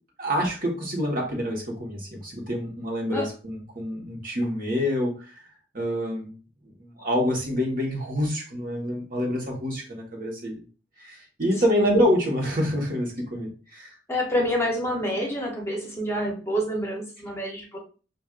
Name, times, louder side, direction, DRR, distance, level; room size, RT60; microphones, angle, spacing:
voice 1, 0.2-5.5 5.7-6.4 6.8-10.6 11.0-14.0, equal, 50° right, -1 dB, 1.4 m, -27 dB
voice 2, 14.1-17.8, equal, 15° left, -1 dB, 0.9 m, -27 dB
6.0 x 2.6 x 2.5 m, 0.36 s
head